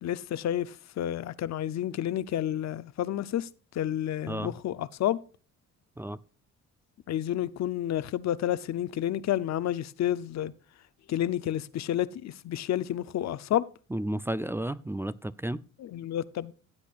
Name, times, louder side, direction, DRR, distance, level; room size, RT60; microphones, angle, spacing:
voice 1, 0.0-3.5 3.7-5.2 7.1-10.5 11.1-13.6 15.8-16.5, left 11 dB, 60° left, 0.7 m, -30 dB
voice 2, 13.9-15.6, right 1 dB, 10° right, 0.4 m, -32 dB
16.0 x 8.3 x 2.4 m
cardioid pair, 90°, 30 cm